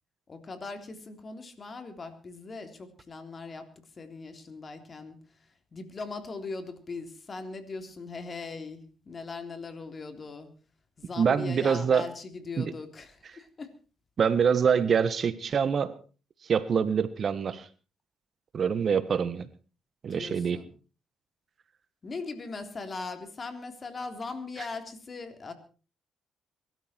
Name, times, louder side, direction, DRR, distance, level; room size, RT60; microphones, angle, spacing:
voice 1, 0.3-10.5 11.0-13.7 20.1-20.7 22.0-25.5, left 3 dB, 40° left, 8 dB, 3.5 m, -40 dB
voice 2, 11.2-12.0 12.6-12.7 14.2-16.0 16.4-17.7 18.5-19.5 20.0-20.6, right 6 dB, 50° right, 14 dB, 1.4 m, -25 dB
22.5 x 13.0 x 4.5 m, 0.37 s
supercardioid pair, 70°, 0 cm